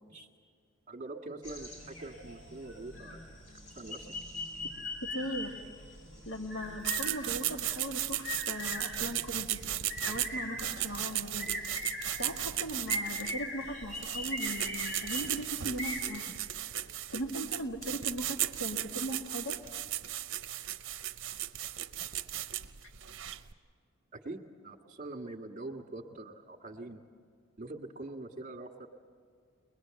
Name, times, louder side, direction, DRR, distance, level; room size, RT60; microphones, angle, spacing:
voice 1, 0.9-4.1 24.1-27.0 27.6-28.9, right 2 dB, 40° right, 3 dB, 1.7 m, -44 dB
sound 1, 1.4-16.0, left 1 dB, 70° left, 6.4 m, -41 dB
voice 2, 5.0-5.6 6.3-9.6 10.1-11.6 12.2-16.4 17.1-19.6, equal, 85° left, 2 dB, 2.0 m, -39 dB
sound 2, 6.8-23.5, right 12 dB, 65° right, 0.7 m, -36 dB
23.0 x 21.0 x 7.7 m, 2.1 s
head